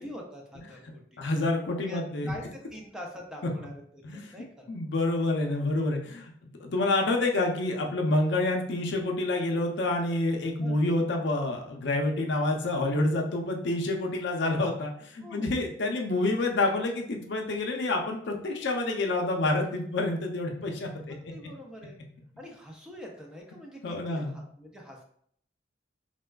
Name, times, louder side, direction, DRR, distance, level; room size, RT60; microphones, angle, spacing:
voice 1, 0.0-1.2 1.8-2.0 2.3-3.7 4.1-4.7 10.6-10.8 15.2-15.5 21.1-22.0 22.4-23.8 24.1-25.0, equal, 5° right, 0 dB, 0.4 m, -44 dB
voice 2, 1.2-2.3 4.0-4.3 4.7-21.2 23.8-24.4, left 2 dB, 70° left, 2 dB, 0.5 m, -28 dB
4.2 x 2.2 x 2.3 m, 0.64 s
head